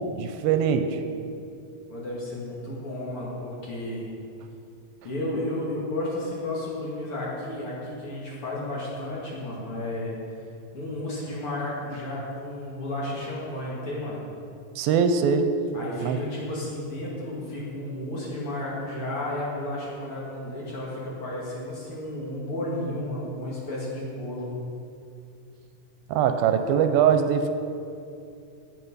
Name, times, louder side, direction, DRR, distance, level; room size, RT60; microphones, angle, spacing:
voice 1, 0.1-1.0 14.8-15.5 16.0-16.2 26.1-27.5, right 7 dB, 85° right, 8 dB, 2.4 m, -22 dB
voice 2, 1.9-4.1 5.0-10.2 10.7-14.2 15.7-24.5, left 1 dB, 45° left, -6 dB, 2.6 m, -32 dB
17.0 x 5.9 x 5.5 m, 2.5 s
omnidirectional pair, 4.3 m